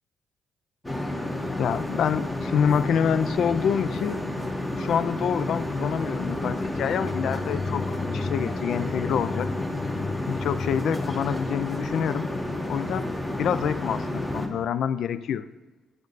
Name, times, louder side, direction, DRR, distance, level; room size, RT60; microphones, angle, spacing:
sound 1, 0.8-14.5, left 1 dB, 10° left, 1.0 m, -30 dB
voice 1, 1.6-4.2 4.8-9.5 10.3-12.3 12.7-15.5, left 8 dB, 70° left, 15 dB, 0.3 m, -27 dB
sound 2, 6.1-12.1, left 4 dB, 45° left, 0.7 m, -36 dB
9.3 x 5.1 x 4.0 m, 1.2 s
cardioid pair, 90°, 0 cm